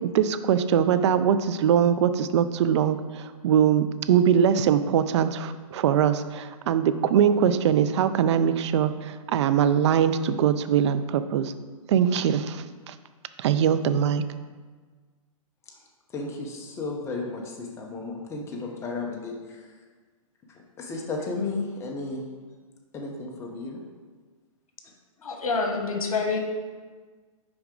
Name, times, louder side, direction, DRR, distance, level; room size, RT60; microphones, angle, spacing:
voice 1, 0.0-11.5 11.9-12.9 13.4-14.2, right 8 dB, 55° right, 12 dB, 0.4 m, -22 dB
voice 2, 16.1-19.6 20.8-22.2 22.9-23.8, left 3 dB, 15° left, -1 dB, 0.8 m, -33 dB
voice 3, 25.2-26.4, left 4 dB, 80° left, 3 dB, 1.2 m, -27 dB
6.0 x 4.7 x 3.8 m, 1.4 s
hypercardioid pair, 140°, 18 cm